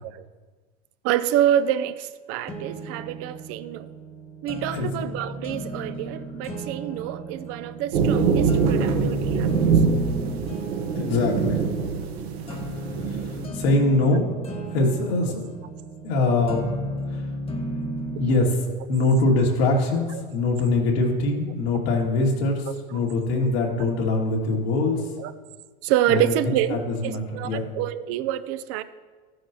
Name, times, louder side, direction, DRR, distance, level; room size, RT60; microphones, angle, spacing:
voice 1, 1.0-3.9 4.4-9.6 20.1-20.2 25.2-25.3 25.8-26.8 27.0-28.8, right 12 dB, 50° right, 13 dB, 0.5 m, -27 dB
sound 1, 2.5-18.5, equal, 20° left, 1.3 m, -34 dB
voice 2, 4.7-5.1 10.9-11.6 13.0-14.4 14.7-15.4 16.0-16.6 17.1-17.2 18.2-25.1 26.1-27.7, left 2 dB, 85° left, -2 dB, 2.6 m, -23 dB
sound 2, 7.9-13.5, right 5 dB, 80° right, 1.4 m, -24 dB
14.0 x 9.7 x 3.0 m, 1.4 s
supercardioid pair, 110°, 30 cm